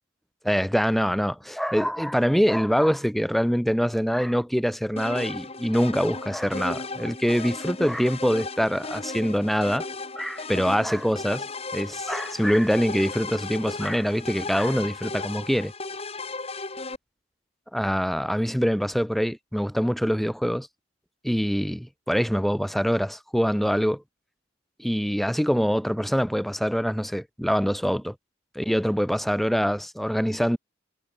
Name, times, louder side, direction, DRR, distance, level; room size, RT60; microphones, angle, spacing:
voice 1, 0.4-9.8 10.2-11.5 11.7-15.7 17.7-20.7 21.2-24.0 24.8-28.1 28.5-30.6, equal, ahead, 1.2 m, -24 dB
sound 1, 5.0-17.0, left 3 dB, 30° left, 2.2 m, -35 dB
head